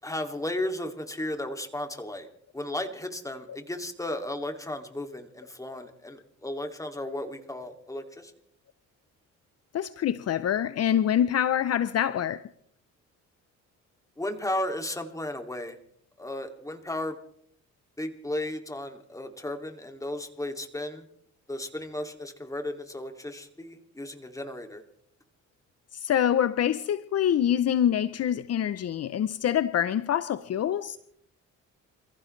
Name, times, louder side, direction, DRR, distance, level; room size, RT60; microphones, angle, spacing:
voice 1, 0.0-2.3 2.5-8.3 14.2-15.8 16.2-17.1 18.0-21.1 21.5-24.8, left 1 dB, 10° left, 2.5 m, -34 dB
voice 2, 9.7-12.4 25.9-31.0, left 10 dB, 55° left, 0.7 m, -25 dB
28.5 x 15.5 x 3.3 m
cardioid pair, 90°, 30 cm